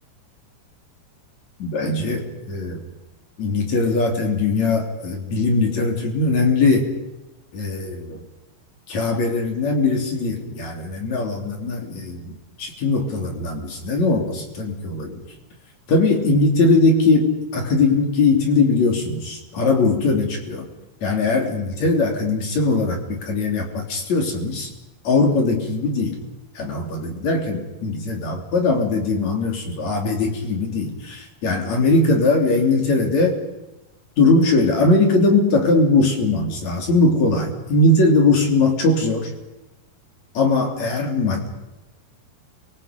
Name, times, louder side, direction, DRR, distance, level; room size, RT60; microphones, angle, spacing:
voice 1, 1.6-2.8 3.4-6.9 7.5-8.2 8.9-15.3 15.9-20.7 21.0-24.7 25.0-26.2 26.6-33.4 34.2-39.3 40.3-41.5, left 3 dB, 40° left, 2 dB, 4.3 m, -20 dB
30.0 x 24.5 x 5.3 m, 0.98 s
omnidirectional pair, 5.0 m